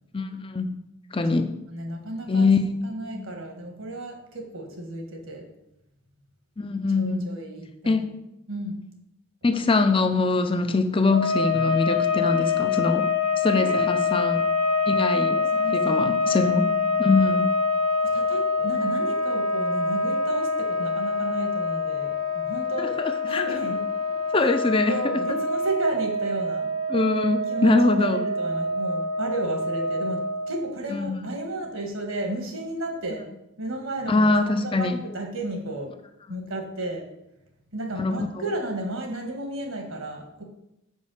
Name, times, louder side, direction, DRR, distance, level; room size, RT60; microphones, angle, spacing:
voice 1, 0.1-0.8 1.1-1.5 2.3-2.7 3.1-3.2 6.6-7.3 7.9-8.2 9.4-14.5 14.9-15.4 15.7-16.7 17.0-17.5 22.8-23.6 24.3-25.2 26.9-28.3 30.9-31.3 34.1-35.0 36.4-36.5 38.0-38.3, left 3 dB, 25° left, 9 dB, 0.5 m, -23 dB
voice 2, 1.2-2.5 2.8-5.5 6.9-8.0 8.5-8.8 13.5-13.9 15.3-16.5 18.0-22.9 23.2-23.8 24.3-24.4 24.9-26.7 27.5-27.7 28.1-33.2 33.6-35.9 36.3-37.0 37.7-40.4, right 1 dB, 70° right, 2 dB, 1.6 m, -33 dB
sound 1, 11.1-30.7, left 3 dB, 75° left, 0.7 m, -25 dB
5.4 x 5.4 x 6.4 m, 0.87 s
head